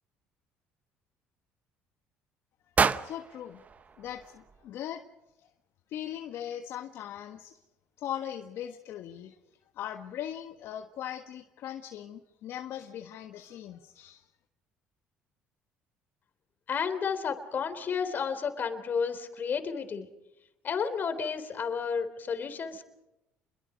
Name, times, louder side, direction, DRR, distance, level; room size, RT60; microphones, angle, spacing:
sound 1, 2.7-4.9, right 5 dB, 35° right, 1.0 m, -31 dB
voice 1, 3.0-3.6 4.0-5.0 5.4-5.5 5.9-7.6 8.0-9.4 9.7-14.3, left 10 dB, 65° left, 5 dB, 1.4 m, -39 dB
voice 2, 16.7-20.1 20.6-22.8, left 6 dB, 45° left, 9 dB, 3.6 m, -31 dB
29.0 x 22.0 x 5.2 m, 0.92 s
supercardioid pair, 85°, 5 cm